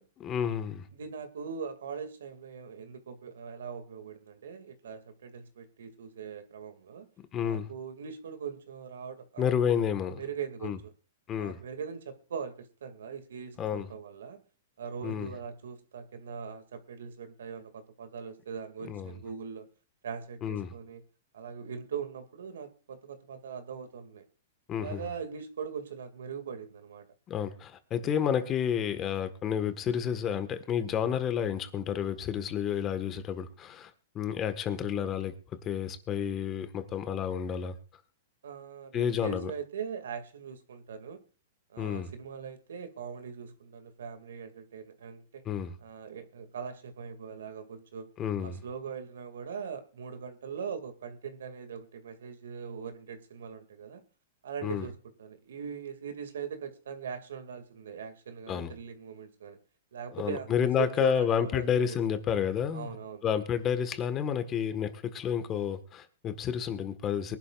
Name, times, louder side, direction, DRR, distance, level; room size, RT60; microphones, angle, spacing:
voice 1, 0.2-0.8 7.3-7.7 9.4-10.2 10.6-10.8 11.3-11.6 13.6-13.9 15.0-15.3 18.9-19.1 20.4-20.7 24.7-25.0 27.3-33.9 34.1-35.3 35.6-37.8 38.9-39.5 41.8-42.1 45.4-45.8 48.2-48.6 54.6-54.9 58.5-58.7 60.1-63.0 63.2-67.4, left 8 dB, 25° left, 1.6 m, -30 dB
voice 2, 0.9-7.1 7.4-9.8 10.2-10.9 11.4-14.4 14.8-19.7 20.0-21.0 21.3-24.3 24.8-27.1 38.4-41.2 41.7-45.4 45.8-48.1 48.4-54.0 54.4-59.6 59.9-62.0 62.7-63.2, right 6 dB, 85° right, 2.4 m, -41 dB
23.0 x 11.5 x 2.5 m
hypercardioid pair, 150°, 0 cm